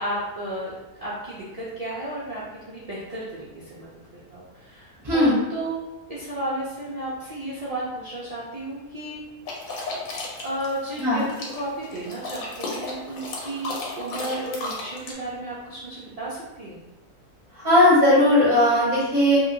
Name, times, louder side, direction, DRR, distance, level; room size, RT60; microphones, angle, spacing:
voice 1, 0.0-3.9 4.3-5.7 6.1-9.2 10.4-16.8, right 1 dB, 70° right, -9 dB, 0.3 m, -33 dB
voice 2, 5.0-5.4 11.0-11.3 17.5-19.4, left 1 dB, 35° right, -7 dB, 0.6 m, -18 dB
sound 1, 9.5-15.1, left 2 dB, 75° left, 1.1 m, -34 dB
2.8 x 2.7 x 2.7 m, 1.1 s
omnidirectional pair, 1.6 m